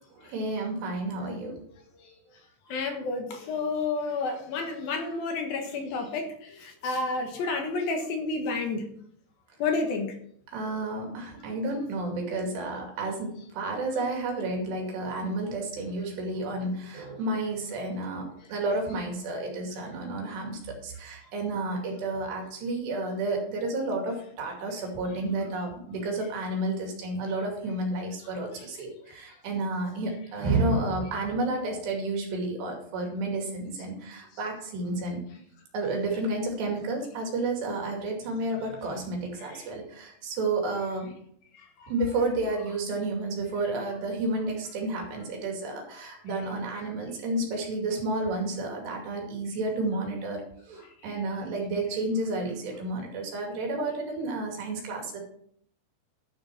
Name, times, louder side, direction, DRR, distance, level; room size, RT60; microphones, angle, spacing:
voice 1, 0.2-1.6 10.5-35.2 35.7-41.1 41.9-50.4 50.7-55.2, right 2 dB, 80° right, 1 dB, 4.7 m, -31 dB
voice 2, 2.7-8.9 9.6-10.1 51.1-51.2, left 3 dB, 65° left, 4 dB, 3.0 m, -30 dB
12.0 x 6.4 x 6.1 m, 0.63 s
omnidirectional pair, 4.9 m